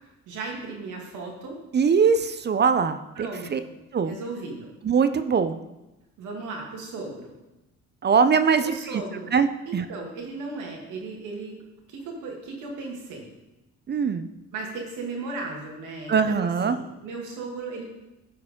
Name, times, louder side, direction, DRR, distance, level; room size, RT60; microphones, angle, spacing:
voice 1, 0.3-1.6 3.2-3.7 4.0-4.7 6.2-7.3 8.6-9.4 9.7-11.6 11.9-13.3 14.5-17.8, right 3 dB, 85° right, 0 dB, 2.0 m, -36 dB
voice 2, 1.7-3.6 3.9-4.2 4.8-5.6 8.0-9.0 9.3-9.9 13.9-14.3 16.1-16.7, right 6 dB, 35° right, 11 dB, 0.5 m, -22 dB
12.0 x 4.8 x 3.6 m, 0.99 s
cardioid pair, 90°, 30 cm